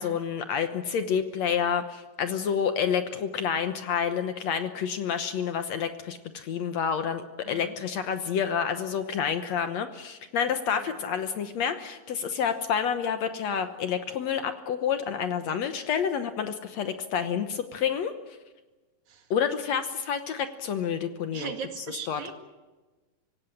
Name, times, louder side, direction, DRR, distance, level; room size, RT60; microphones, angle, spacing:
voice 1, 0.0-18.1 19.3-21.5 22.1-22.3, left 7 dB, 65° left, 9 dB, 2.0 m, -29 dB
voice 2, 7.4-7.7 10.7-11.0 19.1-19.3 21.3-22.3, right 7 dB, 65° right, 6 dB, 3.3 m, -39 dB
25.5 x 17.0 x 9.9 m, 1.2 s
omnidirectional pair, 3.8 m